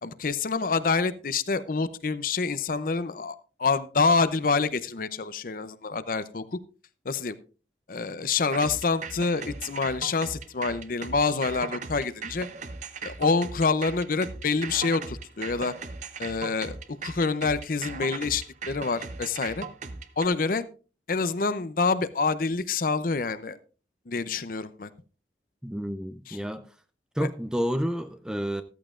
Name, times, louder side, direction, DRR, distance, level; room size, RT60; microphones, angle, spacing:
voice 1, 0.0-6.6 7.0-7.3 7.9-12.5 13.0-15.7 16.2-16.8 17.0-19.7 20.2-20.6 21.1-23.6 24.1-24.9 26.3-26.4 27.2-27.3, left 4 dB, 50° left, 0.6 m, -27 dB
sound 1, 8.5-20.3, right 4 dB, 40° right, 0.7 m, -38 dB
voice 2, 25.6-26.6 27.2-28.6, equal, 5° right, 0.5 m, -30 dB
14.0 x 14.0 x 2.5 m
head